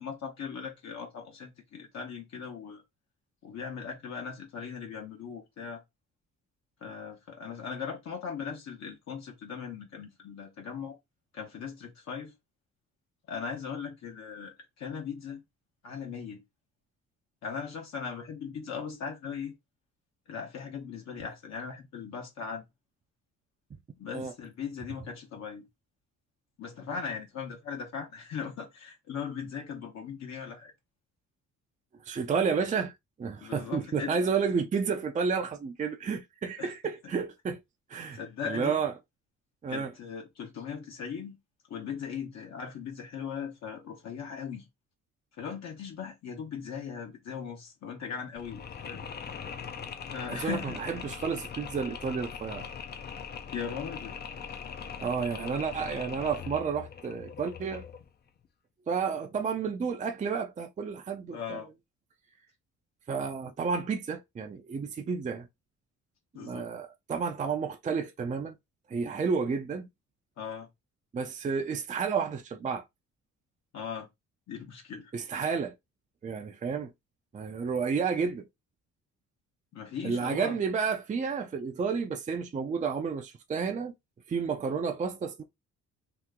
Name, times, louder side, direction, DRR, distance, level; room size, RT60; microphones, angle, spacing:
voice 1, 0.0-2.8 3.4-5.8 6.8-11.0 11.3-12.3 13.3-15.4 15.8-16.4 17.4-19.5 20.3-22.6 24.0-25.6 26.6-30.7 33.4-34.2 36.6-36.7 38.1-38.8 39.7-41.4 41.7-44.7 45.3-49.0 50.0-50.7 53.5-54.1 61.3-61.7 66.3-66.7 70.4-70.7 73.7-74.1 74.5-75.1 79.7-80.6, left 6 dB, 60° left, 1.0 m, -39 dB
voice 2, 32.0-32.9 33.2-37.6 37.9-38.9 39.6-39.9 50.3-52.7 55.0-57.8 58.9-61.6 63.1-65.5 66.4-68.6 68.9-69.9 71.1-72.9 75.1-75.7 76.2-76.9 77.3-78.5 80.0-83.9 84.3-85.4, right 5 dB, 25° right, 0.5 m, -31 dB
Mechanisms, 48.4-58.1, left 7 dB, 35° left, 0.5 m, -41 dB
2.9 x 2.0 x 3.5 m
cardioid pair, 90°, 30 cm